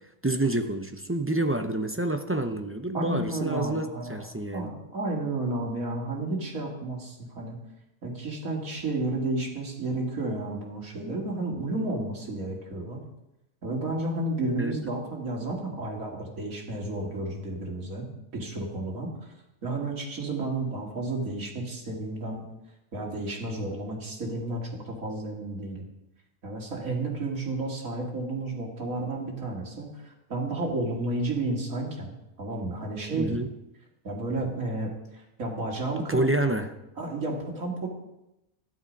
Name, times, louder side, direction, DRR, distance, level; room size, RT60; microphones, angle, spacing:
voice 1, 0.2-4.7 14.6-14.8 33.2-33.5 36.0-36.7, right 1 dB, 15° right, 6 dB, 0.4 m, -28 dB
voice 2, 2.9-4.2 4.5-7.6 8.0-13.0 13.6-18.1 18.3-19.3 19.6-22.5 22.9-25.8 26.4-33.4 34.0-36.3 37.0-37.9, right 2 dB, 75° right, -1 dB, 2.9 m, -32 dB
12.5 x 10.5 x 5.3 m, 0.89 s
omnidirectional pair, 1.4 m